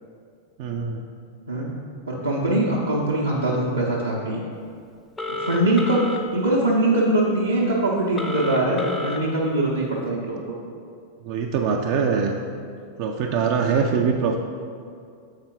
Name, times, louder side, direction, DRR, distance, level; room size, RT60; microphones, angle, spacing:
voice 1, 0.6-1.1 11.2-12.3 13.0-14.4, right 6 dB, 45° right, 2 dB, 0.3 m, -23 dB
voice 2, 2.1-4.4 5.4-10.4, right 1 dB, 80° right, -6 dB, 0.7 m, -22 dB
Telephone, 5.2-6.2 8.2-9.2, left 1 dB, 15° left, 0.5 m, -29 dB
6.5 x 4.3 x 3.6 m, 2.3 s
figure-of-eight pair, 90°, 0 cm